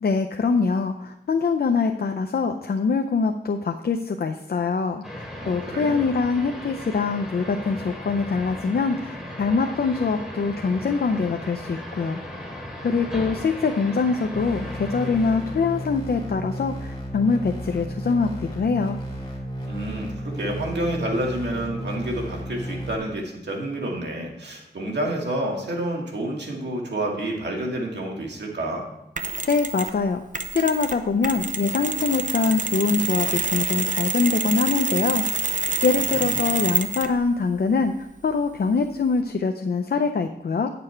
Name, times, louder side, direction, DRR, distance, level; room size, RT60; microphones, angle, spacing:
voice 1, 0.0-12.2 12.8-19.0 29.5-30.2 30.5-35.2 35.8-37.9 38.2-40.7, left 4 dB, 60° left, 5 dB, 0.5 m, -24 dB
sound 1, 5.0-15.9, equal, 5° right, 2.9 m, -37 dB
voice 2, 5.4-6.0 19.7-28.8 35.9-36.4, right 1 dB, 75° right, -1 dB, 2.1 m, -29 dB
sound 2, 14.3-23.0, equal, 25° left, 3.2 m, -33 dB
Mechanisms, 29.2-30.0 30.3-37.2, right 4 dB, 45° right, 0.7 m, -27 dB
9.7 x 6.9 x 4.4 m, 0.85 s
wide cardioid pair, 90°, 18 cm